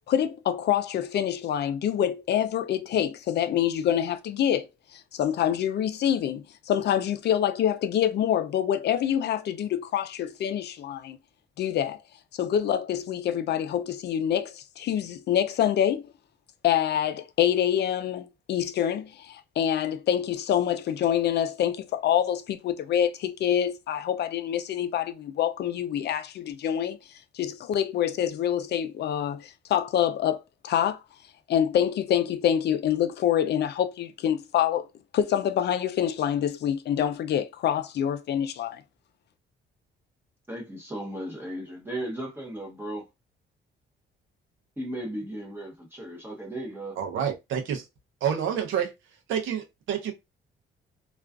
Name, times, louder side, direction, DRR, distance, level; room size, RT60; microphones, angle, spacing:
voice 1, 0.1-4.7 4.9-11.2 11.6-12.0 12.3-16.1 16.6-27.0 27.3-31.0 31.5-34.9 35.1-38.8, left 10 dB, 60° left, 0.4 m, -26 dB
voice 2, 40.5-43.1 44.8-46.9, right 1 dB, 10° right, 0.8 m, -36 dB
voice 3, 47.0-47.8 48.2-48.9 49.3-50.1, right 8 dB, 80° right, 0.7 m, -28 dB
2.4 x 2.2 x 2.3 m
cardioid pair, 90°, 20 cm